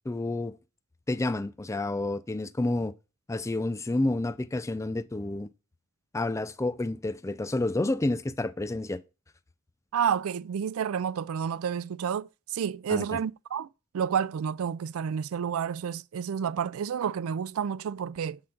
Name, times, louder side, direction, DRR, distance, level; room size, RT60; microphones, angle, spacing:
voice 1, 0.1-0.6 1.1-2.9 3.3-5.5 6.1-9.0 12.9-13.2, left 2 dB, 15° left, 0.3 m, -29 dB
voice 2, 9.9-13.7 13.9-18.4, right 7 dB, 90° right, 0.4 m, -30 dB
7.6 x 3.9 x 5.7 m
head